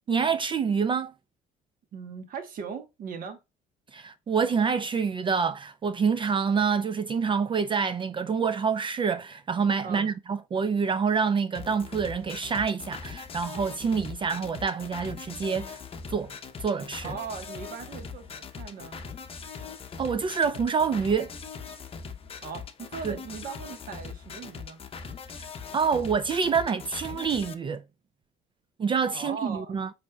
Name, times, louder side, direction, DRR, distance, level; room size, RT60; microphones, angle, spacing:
voice 1, 0.1-1.1 3.9-15.8 16.1-17.1 20.0-21.3 23.0-23.2 25.7-27.8 28.8-29.9, right 6 dB, 30° right, 0.4 m, -27 dB
voice 2, 1.9-3.4 9.8-10.1 17.0-19.1 22.4-24.8 29.1-29.8, right 6 dB, 60° right, 1.2 m, -39 dB
sound 1, 11.5-27.5, left 5 dB, 35° left, 0.7 m, -41 dB
5.2 x 4.2 x 2.3 m
cardioid pair, 110°, 17 cm